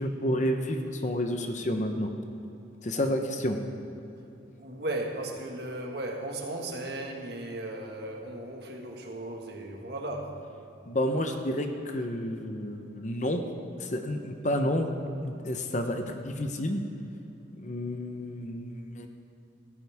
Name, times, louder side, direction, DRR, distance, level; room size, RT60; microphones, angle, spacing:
voice 1, 0.0-2.1 2.8-3.6 10.9-13.4 13.8-14.9 15.2-16.8 17.6-19.1, left 1 dB, 40° left, 5 dB, 0.9 m, -30 dB
voice 2, 4.6-10.4, right 1 dB, 55° right, 1 dB, 1.8 m, -36 dB
17.5 x 15.0 x 3.6 m, 2.9 s
head